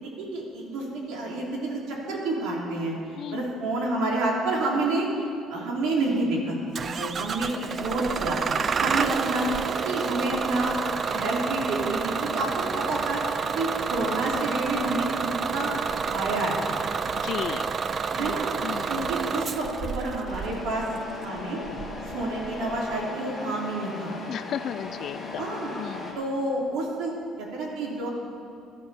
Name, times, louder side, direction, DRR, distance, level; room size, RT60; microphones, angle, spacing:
voice 1, 0.0-2.9 3.3-5.1 5.5-6.5 6.8-10.7 11.1-16.6 18.1-18.5 18.9-19.7 19.9-20.9 21.1-21.6 22.1-24.1 25.4-25.7 26.2-27.1 27.4-28.1, right 2 dB, 75° right, -3 dB, 3.6 m, -29 dB
Bus / Engine starting, 6.8-23.0, right 5 dB, 30° right, 0.4 m, -29 dB
voice 2, 17.2-17.7 18.2-18.4 18.6-19.1 24.3-25.5 25.8-26.2, left 9 dB, 40° left, 14 dB, 0.4 m, -35 dB
Truck, 20.3-26.1, left 3 dB, 15° left, 1.9 m, -37 dB
17.0 x 12.5 x 4.4 m, 2.5 s
cardioid pair, 175°, 0 cm